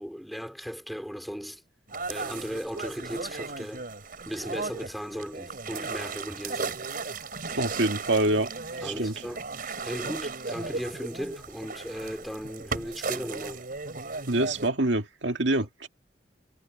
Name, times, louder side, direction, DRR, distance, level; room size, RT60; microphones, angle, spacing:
voice 1, 0.0-1.6 2.0-3.8 4.2-6.9 8.8-9.5 9.8-13.7, equal, ahead, 5.0 m, -37 dB
sound 1, 1.9-14.7, right 4 dB, 50° right, 4.5 m, -36 dB
voice 2, 7.6-8.5 8.8-9.1 14.3-15.9, right 2 dB, 85° right, 2.1 m, -25 dB
head